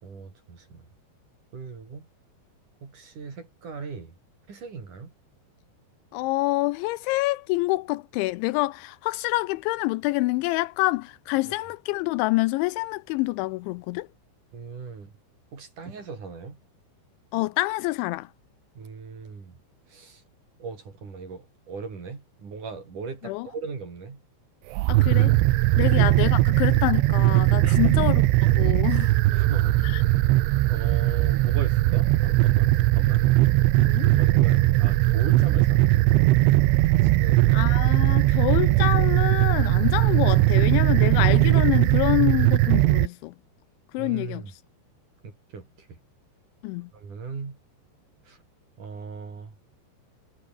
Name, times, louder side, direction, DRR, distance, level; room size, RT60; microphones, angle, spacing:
voice 1, 0.0-0.8 1.5-2.1 2.8-4.2 4.5-5.1 11.5-11.6 14.5-15.1 15.5-16.6 18.7-19.6 19.9-20.2 20.6-24.2 25.7-26.0 27.6-28.1 29.3-29.8 30.7-33.3 34.1-36.2 37.0-37.7 44.0-44.5 45.2-46.0 46.9-47.6 48.3-48.4 48.8-49.6, right 5 dB, 40° right, 5.9 m, -38 dB
voice 2, 6.1-14.1 17.3-18.3 23.2-23.5 24.9-25.3 25.8-28.1 28.6-29.1 29.8-30.0 33.8-34.1 37.5-43.3 43.9-44.4 46.6-46.9, left 21 dB, 80° left, 2.8 m, -26 dB
sound 1, 24.7-43.1, right 18 dB, 90° right, 3.4 m, -19 dB
omnidirectional pair, 5.5 m